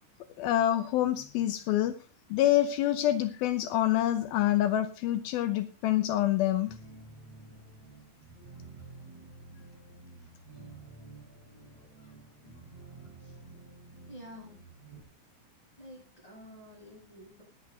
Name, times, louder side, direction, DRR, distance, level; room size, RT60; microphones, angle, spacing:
voice 1, 0.4-2.0 2.3-6.8, left 13 dB, 85° left, 10 dB, 2.1 m, -26 dB
sound 1, 6.7-15.0, right 3 dB, 35° right, 6.5 m, -50 dB
voice 2, 14.1-14.7 15.8-17.4, equal, 5° left, -1 dB, 7.4 m, -49 dB
17.5 x 10.5 x 4.1 m, 0.32 s
omnidirectional pair, 5.5 m